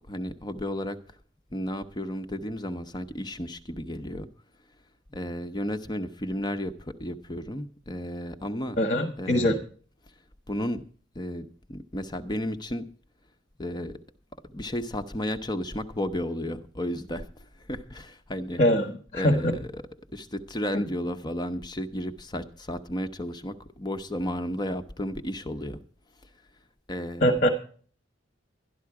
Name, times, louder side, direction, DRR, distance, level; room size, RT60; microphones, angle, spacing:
voice 1, 0.1-1.0 1.5-4.3 5.1-8.8 9.2-9.6 10.5-10.8 11.1-12.9 13.6-14.0 14.5-18.6 19.1-19.8 20.1-25.8 26.9-27.4, left 1 dB, 20° left, 8 dB, 0.8 m, -33 dB
voice 2, 8.8-9.6 18.6-19.5 27.2-27.5, equal, 40° left, 6 dB, 1.3 m, -23 dB
12.5 x 11.5 x 4.7 m, 0.44 s
head